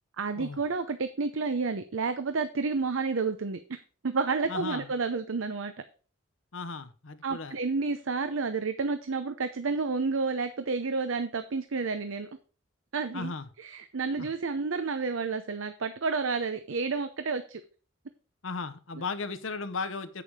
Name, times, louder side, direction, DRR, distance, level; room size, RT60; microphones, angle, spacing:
voice 1, 0.2-5.7 7.2-12.3 12.9-13.3 13.6-17.6, right 4 dB, 85° right, 9 dB, 0.7 m, -30 dB
voice 2, 4.5-4.9 6.5-7.6 13.1-13.5 14.2-14.3 18.4-20.2, left 4 dB, 85° left, 11 dB, 1.0 m, -36 dB
8.7 x 6.8 x 4.9 m, 0.39 s
head